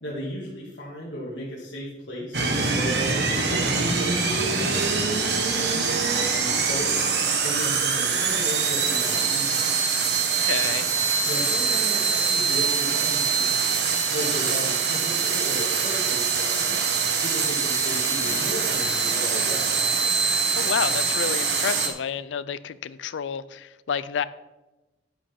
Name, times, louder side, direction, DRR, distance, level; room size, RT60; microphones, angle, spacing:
voice 1, 0.0-5.3 5.7-7.0 7.4-9.7 11.2-16.8 17.1-19.8, equal, 65° left, -7 dB, 2.1 m, -35 dB
sound 1, 2.3-21.9, right 5 dB, 65° right, 1.4 m, -24 dB
voice 2, 10.4-10.9 20.6-24.2, left 7 dB, 85° left, 16 dB, 0.4 m, -29 dB
10.0 x 9.2 x 3.6 m, 1.1 s
head